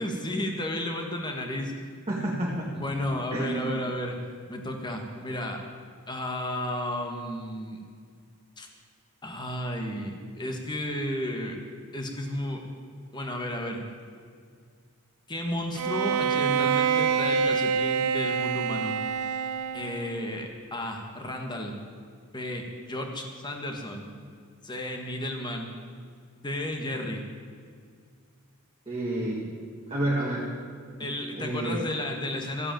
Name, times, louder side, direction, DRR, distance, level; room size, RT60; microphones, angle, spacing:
voice 1, 0.0-1.7 2.7-4.2 4.5-5.6 6.1-7.8 8.6-8.7 9.2-11.6 11.9-12.6 13.1-13.8 15.3-18.9 19.7-21.8 22.3-24.1 24.6-25.8 26.4-27.2 31.0-32.7, left 1 dB, 20° left, 3 dB, 1.5 m, -33 dB
voice 2, 2.1-2.7 3.3-3.8 28.9-29.5 29.9-30.5 30.9-31.1 31.4-31.9, right 1 dB, 25° right, -5 dB, 1.9 m, -29 dB
Bowed string instrument, 15.7-20.2, right 6 dB, 90° right, 0.6 m, -26 dB
14.0 x 8.4 x 9.0 m, 2.1 s
head